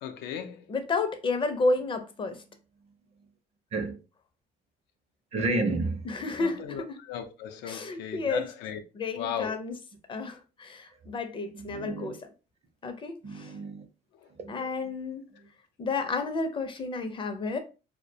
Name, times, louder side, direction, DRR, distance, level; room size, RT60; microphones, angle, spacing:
voice 1, 0.0-0.6 6.4-8.8 9.2-9.5, left 9 dB, 85° left, 0.4 m, -36 dB
voice 2, 0.7-2.4 6.0-7.0 7.6-8.5 8.9-9.8 10.1-12.3 12.8-13.5 14.5-15.2 15.8-17.6, left 3 dB, 30° left, 0.5 m, -31 dB
voice 3, 5.3-6.2 11.5-12.1 13.2-13.8 14.4-14.7, right 2 dB, 40° right, 0.5 m, -31 dB
2.3 x 2.1 x 2.6 m
cardioid pair, 110°, 17 cm